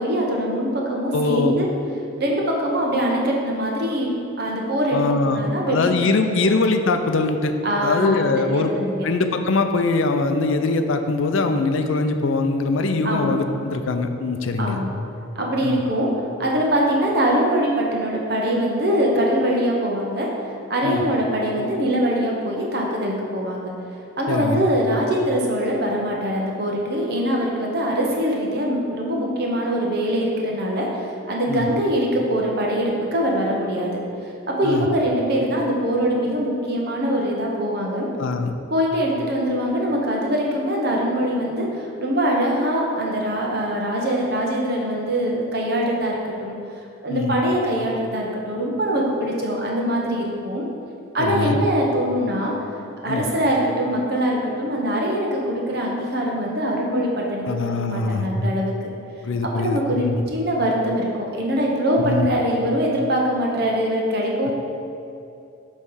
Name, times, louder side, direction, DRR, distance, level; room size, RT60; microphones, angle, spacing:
voice 1, 0.0-1.7 2.2-4.1 4.4-6.5 7.6-9.1 13.0-13.3 14.6-14.9 15.3-16.1 16.4-20.3 20.7-23.7 24.2-33.9 34.5-38.1 38.7-46.6 47.0-50.7 51.1-52.5 53.0-58.7 59.6-64.5, equal, 50° right, -2 dB, 1.0 m, -23 dB
voice 2, 1.1-1.6 4.9-5.4 5.7-7.5 7.8-8.7 9.0-14.8 15.6-15.8 20.8-21.0 24.3-24.7 31.5-31.7 34.6-34.9 38.2-38.5 47.1-47.3 51.2-51.6 53.1-53.2 57.5-58.3 59.2-60.2 62.0-62.3, left 3 dB, 75° left, 7 dB, 0.5 m, -22 dB
8.0 x 3.2 x 5.6 m, 2.7 s
head